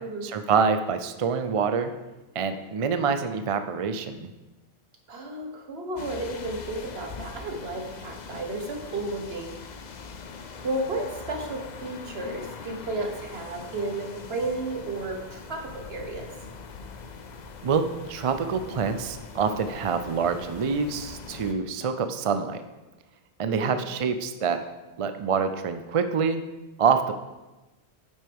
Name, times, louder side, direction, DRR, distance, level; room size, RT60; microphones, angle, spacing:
voice 1, 0.2-1.9 2.3-4.3 17.6-22.6 23.4-24.6 25.0-26.4 26.8-27.1, right 6 dB, 50° right, 9 dB, 0.4 m, -26 dB
voice 2, 5.1-9.6 10.6-16.3 23.5-23.8, right 2 dB, 75° right, 2 dB, 1.5 m, -33 dB
sound 1, 6.0-21.5, left 5 dB, 50° left, 0.7 m, -42 dB
9.7 x 7.6 x 3.5 m, 1.1 s
omnidirectional pair, 1.1 m